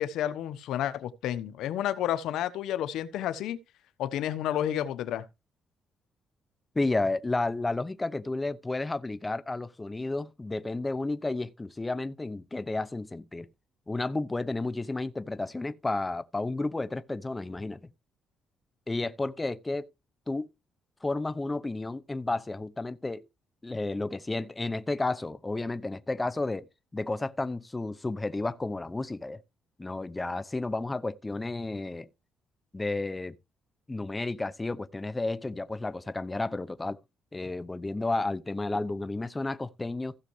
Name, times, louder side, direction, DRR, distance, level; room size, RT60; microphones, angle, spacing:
voice 1, 0.0-3.6 4.0-5.3, left 11 dB, 85° left, 1.0 m, -30 dB
voice 2, 6.7-13.5 13.9-17.8 18.9-19.9 20.3-20.5 21.0-23.3 23.6-26.7 26.9-29.4 29.8-32.1 32.7-33.4 33.9-37.0 37.3-40.1, left 2 dB, 20° left, 0.7 m, -32 dB
15.5 x 6.5 x 3.2 m
cardioid pair, 90°, 0 cm